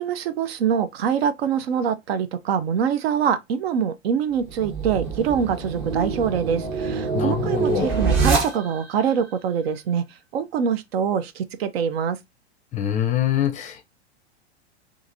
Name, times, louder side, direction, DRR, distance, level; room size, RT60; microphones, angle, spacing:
voice 1, 0.0-10.0 10.3-12.2, right 7 dB, 65° right, 0.5 m, -24 dB
sound 1, 4.4-9.0, right 4 dB, 40° right, 1.1 m, -25 dB
voice 2, 7.1-7.9 12.7-13.8, left 11 dB, 20° left, 0.5 m, -24 dB
2.8 x 2.5 x 2.5 m
hypercardioid pair, 100°, 33 cm